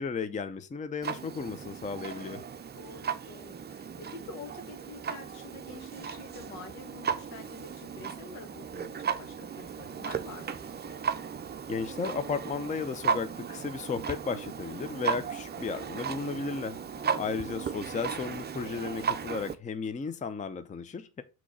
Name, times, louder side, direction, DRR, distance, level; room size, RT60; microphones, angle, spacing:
voice 1, 0.0-2.4 11.7-16.8 17.2-21.2, left 5 dB, 15° left, 0.6 m, -34 dB
Clock, 1.0-19.5, right 6 dB, 20° right, 0.6 m, -36 dB
voice 2, 2.7-11.0 15.0-15.4 16.9-17.2, left 4 dB, 75° left, 1.6 m, -47 dB
6.1 x 3.0 x 5.5 m
hypercardioid pair, 60°, 46 cm